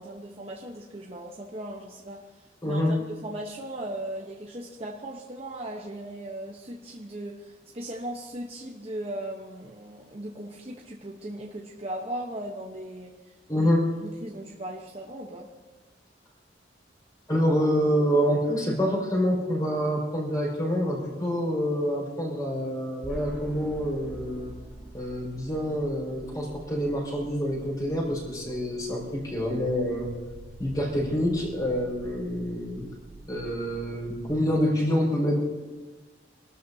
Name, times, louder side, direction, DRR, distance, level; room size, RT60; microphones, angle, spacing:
voice 1, 0.0-3.0 3.2-13.7 14.0-15.5, right 1 dB, 35° right, -2 dB, 1.1 m, -38 dB
voice 2, 2.6-2.9 13.5-13.8 17.3-24.5 24.9-30.1 30.6-32.9 33.3-35.4, equal, 20° left, -4 dB, 5.4 m, -27 dB
sound 1, 23.0-34.3, right 1 dB, 5° right, 1.9 m, -45 dB
27.0 x 12.5 x 2.8 m, 1.3 s
head